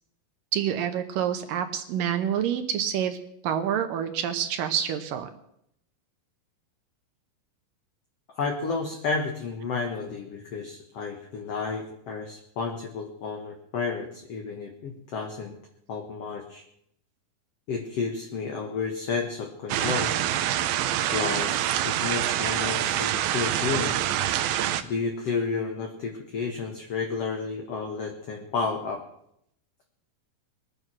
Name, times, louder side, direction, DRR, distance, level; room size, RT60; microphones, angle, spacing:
voice 1, 0.5-3.2 3.4-5.3, right 9 dB, 75° right, 8 dB, 2.5 m, -27 dB
voice 2, 8.4-15.6 15.9-16.6 17.7-20.1 21.1-24.0 24.8-29.0, left 4 dB, 55° left, 2 dB, 2.0 m, -31 dB
sound 1, 19.7-24.8, right 12 dB, 90° right, 2.7 m, -26 dB
21.5 x 9.3 x 6.2 m, 0.75 s
omnidirectional pair, 4.3 m